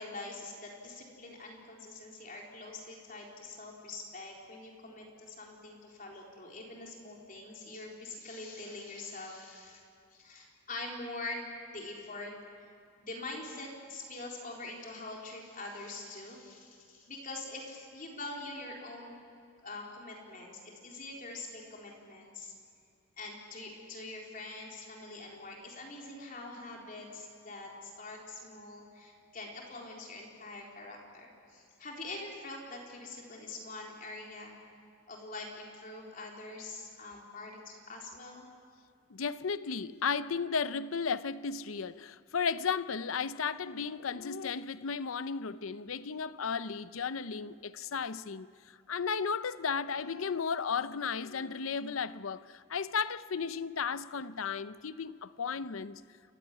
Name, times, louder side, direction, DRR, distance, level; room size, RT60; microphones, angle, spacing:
voice 1, 0.0-9.8 10.1-11.4 11.7-12.7 13.0-19.2 19.6-22.5 23.2-34.5 35.1-38.5, left 2 dB, 40° left, 3.9 m, -44 dB
voice 2, 39.1-48.5 48.9-56.0, left 5 dB, 90° left, 0.7 m, -34 dB
29.0 x 15.5 x 9.6 m
head